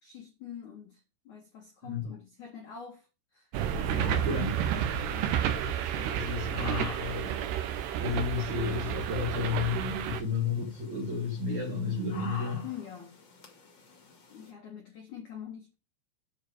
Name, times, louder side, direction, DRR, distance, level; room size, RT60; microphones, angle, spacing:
voice 1, 0.0-3.1 3.3-3.5 3.8-5.5 6.0-6.3 12.6-13.2 14.3-15.7, left 8 dB, 70° left, 1.8 m, -45 dB
sound 1, 3.5-10.2, right 9 dB, 80° right, 2.5 m, -31 dB
sound 2, 3.6-14.5, left 3 dB, 45° left, 1.5 m, -50 dB
voice 2, 4.2-4.5 6.1-7.5 8.0-12.6, left 5 dB, 60° right, 1.9 m, -32 dB
9.4 x 4.7 x 6.6 m
omnidirectional pair, 6.0 m